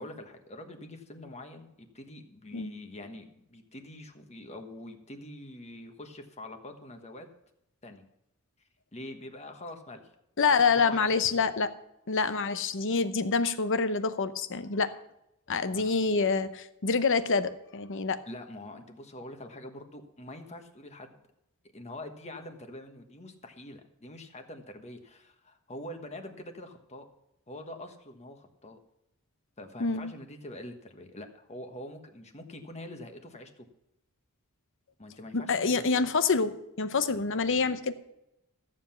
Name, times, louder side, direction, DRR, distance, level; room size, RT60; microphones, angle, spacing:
voice 1, 0.0-7.3 7.8-8.0 8.9-10.0 10.4-11.1 11.4-11.5 15.7-15.9 18.3-21.2 21.7-27.1 27.5-28.8 29.6-33.7 35.0-35.7, left 1 dB, 30° left, 6 dB, 1.3 m, -45 dB
voice 2, 10.4-11.7 12.1-14.9 15.5-18.2 29.8-30.1 35.3-37.9, left 4 dB, 60° left, 12 dB, 0.8 m, -27 dB
14.0 x 7.7 x 5.8 m, 0.86 s
head